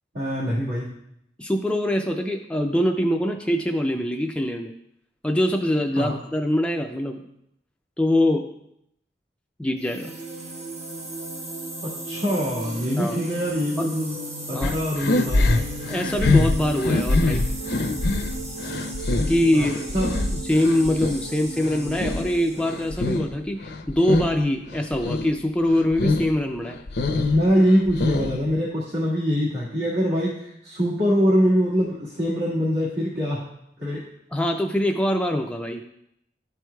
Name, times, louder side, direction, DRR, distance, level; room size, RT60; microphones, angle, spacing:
voice 1, 0.1-0.9 6.0-6.2 11.8-14.1 14.5-15.7 19.5-20.2 27.2-33.5 33.8-34.1, equal, 75° right, -8 dB, 1.8 m, -23 dB
voice 2, 1.4-4.7 5.2-7.2 8.0-8.5 9.6-10.1 13.0-13.2 13.8-13.9 14.5-14.8 15.9-17.4 19.3-26.8 34.3-35.9, left 1 dB, 5° left, 2 dB, 0.4 m, -23 dB
sound 1, 9.8-23.2, right 1 dB, 40° right, 1.0 m, -35 dB
sound 2, 14.6-21.2 21.6-23.4 23.6-24.4 24.7-25.3 25.7-26.3 26.6-28.5, left 2 dB, 65° left, 0.6 m, -24 dB
12.0 x 4.6 x 2.3 m, 0.77 s
head